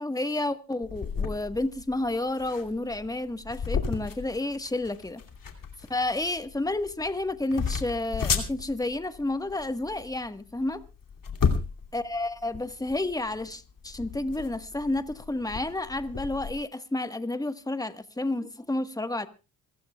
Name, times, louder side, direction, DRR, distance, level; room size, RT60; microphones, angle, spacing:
voice 1, 0.0-5.2 5.9-10.8 11.9-19.3, left 2 dB, 10° left, 10 dB, 1.4 m, -30 dB
sound 1, 0.8-16.6, left 5 dB, 50° left, 2.8 m, -34 dB
26.5 x 15.0 x 2.4 m, 0.31 s
supercardioid pair, 55°, 43 cm